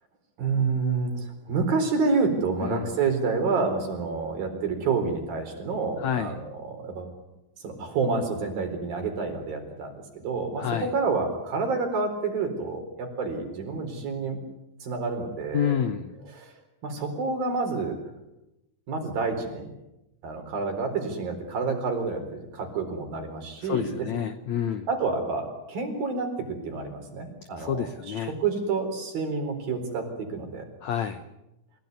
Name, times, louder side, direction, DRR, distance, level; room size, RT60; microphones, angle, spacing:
voice 1, 0.4-7.1 7.6-14.4 14.8-15.8 16.3-16.5 16.8-18.0 18.9-19.7 20.2-24.1 24.9-28.1 28.4-30.7, right 4 dB, 60° right, 5 dB, 5.9 m, -28 dB
voice 2, 6.0-6.4 10.6-10.9 15.5-16.1 23.6-24.9 27.6-28.3 30.8-31.2, left 9 dB, 75° left, 9 dB, 1.7 m, -29 dB
29.0 x 16.5 x 9.5 m, 0.94 s
omnidirectional pair, 4.6 m